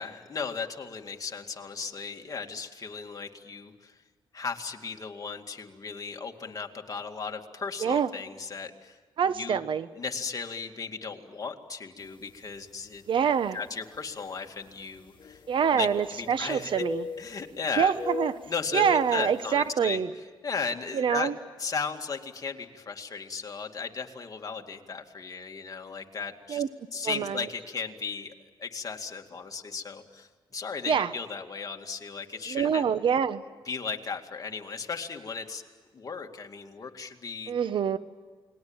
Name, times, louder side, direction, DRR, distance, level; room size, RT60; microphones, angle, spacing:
voice 1, 0.0-3.9 4.3-9.0 9.4-9.6 10.0-13.0 13.5-15.4 15.7-15.9 16.2-16.7 17.2-17.9 18.5-20.0 20.4-21.3 21.6-26.6 26.9-28.3 28.6-32.8 33.7-35.6 35.9-37.5, left 5 dB, 40° left, 3 dB, 2.3 m, -36 dB
voice 2, 7.8-8.1 9.2-9.9 13.1-13.6 15.5-17.1 17.8-18.4 18.7-20.1 20.9-21.3 26.5-26.7 27.0-27.5 30.9-31.1 32.5-33.4 37.5-38.0, right 7 dB, 70° right, 13 dB, 1.1 m, -26 dB
sound 1, 12.3-12.4 13.2-13.3 15.2-16.4 16.7-17.6 18.0-19.3, left 5 dB, 65° left, 1.6 m, -37 dB
29.0 x 21.0 x 8.9 m, 1.5 s
cardioid pair, 85°, 9 cm